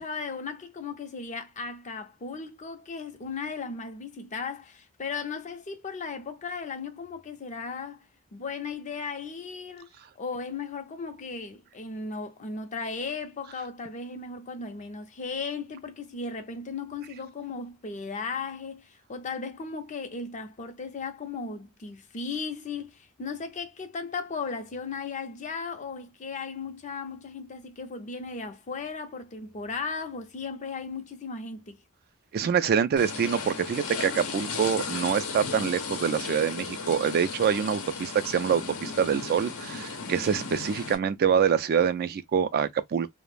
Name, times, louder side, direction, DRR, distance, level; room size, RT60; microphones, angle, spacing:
voice 1, 0.0-8.1 8.3-9.9 10.2-31.8, left 4 dB, 35° left, 0.5 m, -36 dB
voice 2, 32.3-43.1, right 7 dB, 45° right, 0.3 m, -25 dB
sound 1, 33.0-41.0, left 4 dB, 85° left, 0.7 m, -35 dB
2.3 x 2.1 x 3.1 m
head